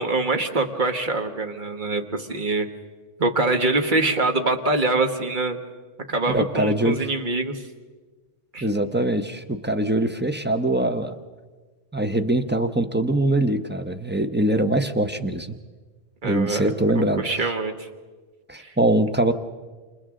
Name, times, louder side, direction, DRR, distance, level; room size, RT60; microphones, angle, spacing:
voice 1, 0.0-2.7 3.2-5.6 6.1-7.6 8.5-8.7 16.2-16.7 17.2-17.9 18.6-18.7, right 2 dB, 50° right, 5 dB, 1.6 m, -24 dB
voice 2, 6.3-7.1 8.6-11.2 11.9-15.6 16.2-17.5 18.5-19.3, right 1 dB, 10° right, 7 dB, 0.8 m, -23 dB
29.5 x 27.5 x 3.8 m, 1.4 s
omnidirectional pair, 1.1 m